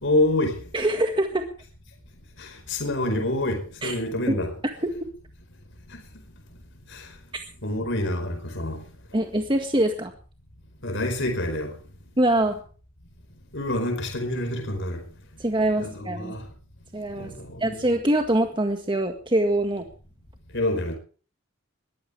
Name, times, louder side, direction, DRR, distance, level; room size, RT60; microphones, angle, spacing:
voice 1, 0.0-0.6 2.4-4.5 6.9-7.0 7.6-8.8 10.8-11.7 13.5-15.0 15.8-16.4 17.2-18.0 20.5-21.0, left 1 dB, 60° left, 4.8 m, -27 dB
voice 2, 0.7-1.5 3.8-4.0 4.3-4.4 9.1-10.1 12.2-12.6 15.4-16.4 16.9-17.3 17.6-19.8, right 1 dB, 25° right, 1.8 m, -24 dB
22.0 x 15.0 x 3.4 m
head